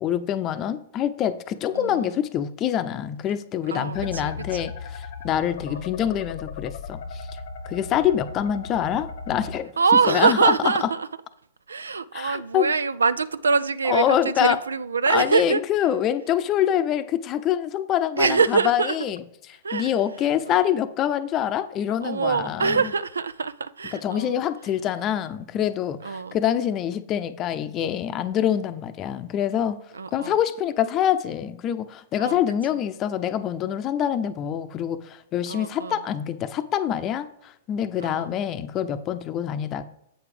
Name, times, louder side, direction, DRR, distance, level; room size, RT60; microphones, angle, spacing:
voice 1, 0.0-7.3 7.7-9.7 10.1-10.5 12.1-12.7 13.9-14.6 15.1-19.2 19.7-22.8 24.0-29.8 30.1-39.8, left 10 dB, 35° left, 0.6 m, -25 dB
voice 2, 1.7-2.2 3.7-4.7 5.7-5.8 8.0-8.1 9.8-11.1 11.7-15.6 18.2-19.0 19.6-19.9 20.4-20.6 22.0-24.4 26.0-26.4 29.9-30.4 32.2-32.4 32.7-32.8 35.5-36.0 38.0-38.4, right 5 dB, 85° right, 0.4 m, -24 dB
sound 1, 3.9-9.6, left 5 dB, 65° left, 0.9 m, -37 dB
7.9 x 4.9 x 5.0 m
hypercardioid pair, 110°, 0 cm